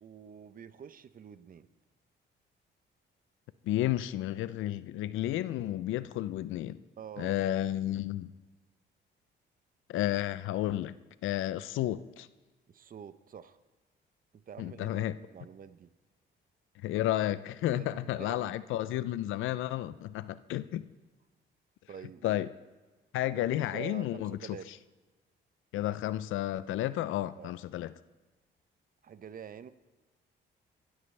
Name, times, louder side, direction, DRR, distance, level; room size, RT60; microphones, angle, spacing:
voice 1, 0.0-1.7 7.0-7.4 12.7-13.6 14.3-15.9 17.7-18.6 21.9-22.5 23.3-24.7 27.4-27.5 29.0-29.7, right 8 dB, 45° right, 13 dB, 0.7 m, -47 dB
voice 2, 3.6-6.8 7.2-8.3 9.9-11.0 11.2-12.3 14.6-15.1 16.8-20.9 22.2-22.5 23.1-24.4 25.7-27.9, left 13 dB, 85° left, 16 dB, 0.5 m, -32 dB
18.0 x 13.0 x 3.3 m, 1.3 s
cardioid pair, 90°, 20 cm